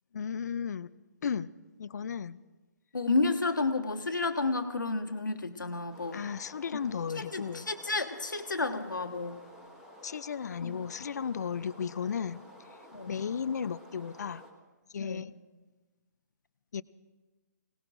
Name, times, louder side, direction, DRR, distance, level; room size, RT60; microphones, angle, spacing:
voice 1, 0.1-0.9 1.2-1.5 1.8-2.4 6.1-7.7 10.0-12.4 13.1-14.4 14.9-15.3 16.7-16.8, left 7 dB, 60° left, 17 dB, 0.5 m, -34 dB
voice 2, 2.9-6.2 7.2-9.4 10.6-10.8 12.9-13.2 15.0-15.3, left 3 dB, 90° left, 6 dB, 1.5 m, -31 dB
sound 1, 5.9-14.5, left 1 dB, 5° right, 1.7 m, -52 dB
26.5 x 18.5 x 2.6 m, 1.3 s
figure-of-eight pair, 145°, 10 cm